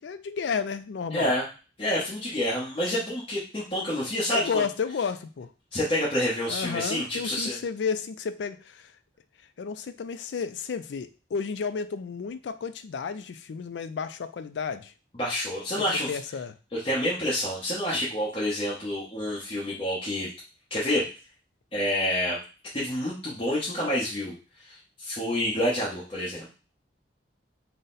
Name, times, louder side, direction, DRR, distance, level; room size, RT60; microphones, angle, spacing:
voice 1, 0.0-1.3 4.3-5.5 6.5-8.9 9.6-14.9 15.8-16.6, left 5 dB, 70° left, 10 dB, 0.4 m, -32 dB
voice 2, 1.1-1.4 1.8-4.6 5.7-7.6 15.1-16.1 16.7-20.3 20.7-21.1 21.7-22.4 22.7-24.3 24.7-26.5, left 1 dB, 30° left, -8 dB, 1.0 m, -28 dB
4.0 x 2.1 x 3.9 m, 0.34 s
head